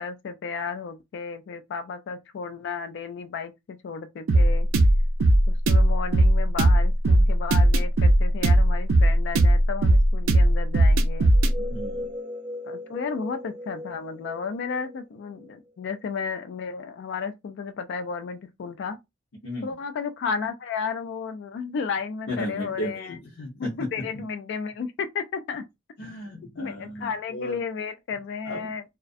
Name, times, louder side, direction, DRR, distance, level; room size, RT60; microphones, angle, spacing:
voice 1, 0.0-4.7 5.5-11.3 12.7-19.0 19.6-23.2 23.6-25.7 26.6-28.8, left 5 dB, 60° left, 0.3 m, -33 dB
sound 1, 4.3-11.5, right 1 dB, 85° right, 0.4 m, -18 dB
sound 2, 11.3-15.9, left 1 dB, 25° right, 0.5 m, -38 dB
voice 2, 11.6-12.1 19.4-19.8 22.3-24.2 26.0-27.6 28.4-28.7, left 1 dB, 75° left, 0.8 m, -35 dB
2.3 x 2.1 x 2.5 m
head